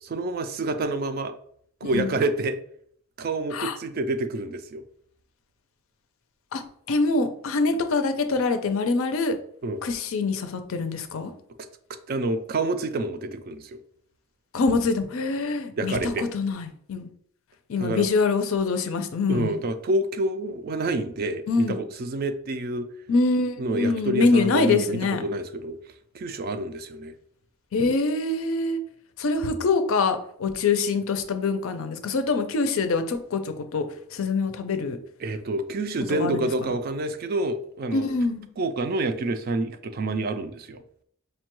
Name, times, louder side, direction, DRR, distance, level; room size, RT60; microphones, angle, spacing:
voice 1, 0.0-1.3 1.8-2.6 3.2-4.8 9.6-9.8 12.1-13.8 15.8-16.3 17.8-18.1 19.3-22.9 23.6-25.8 26.1-27.1 35.2-38.1 38.6-40.8, right 2 dB, 45° right, 9 dB, 0.3 m, -28 dB
voice 2, 6.9-9.4 9.8-11.3 14.5-17.1 17.7-19.5 21.5-21.8 23.1-25.2 27.7-28.8 29.2-33.8 34.1-35.0 36.2-36.4 37.9-38.4, left 3 dB, 65° left, 8 dB, 0.4 m, -24 dB
5.2 x 2.2 x 2.9 m, 0.63 s
head